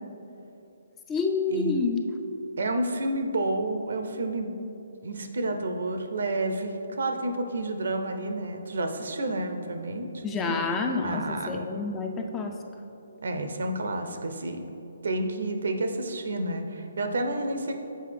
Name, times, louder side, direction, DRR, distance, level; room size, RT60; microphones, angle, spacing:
voice 1, 1.1-2.1 10.2-12.6, left 3 dB, 15° left, 3 dB, 0.4 m, -28 dB
voice 2, 2.6-4.5 5.0-10.7 11.0-11.5 13.2-14.6 15.0-17.7, right 1 dB, 70° right, 6 dB, 0.6 m, -30 dB
7.6 x 4.5 x 3.4 m, 2.9 s
hypercardioid pair, 145°, 0 cm